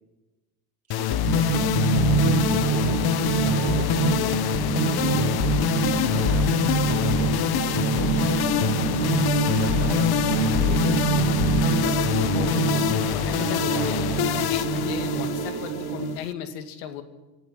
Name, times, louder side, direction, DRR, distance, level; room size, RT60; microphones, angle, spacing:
sound 1, 0.9-16.3, left 12 dB, 50° left, 1.1 m, -25 dB
voice 1, 0.9-4.4 4.8-7.4 7.9-8.4 9.5-10.8 11.5-12.1, right 6 dB, 30° right, 9 dB, 1.6 m, -39 dB
sound 2, 1.2-16.2, right 8 dB, 75° right, 1.7 m, -26 dB
Water, 3.8-12.2, left 1 dB, 15° left, 3.8 m, -45 dB
voice 2, 12.3-14.1 14.5-17.0, left 8 dB, 75° left, 8 dB, 2.3 m, -36 dB
26.5 x 11.5 x 9.9 m, 1.2 s
supercardioid pair, 90°, 49 cm